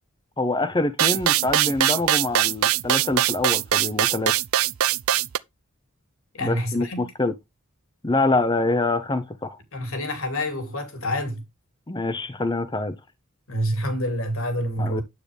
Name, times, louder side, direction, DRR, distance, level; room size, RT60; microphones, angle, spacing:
voice 1, 0.4-4.3 6.4-7.3 8.0-9.6 11.9-13.0 14.8-15.0, left 2 dB, 20° left, 0.8 m, -25 dB
sound 1, 1.0-5.4, right 12 dB, 80° right, 0.5 m, -21 dB
voice 2, 6.3-7.1 9.7-11.4 13.5-15.0, equal, 70° left, 3.0 m, -27 dB
9.5 x 8.6 x 3.4 m
head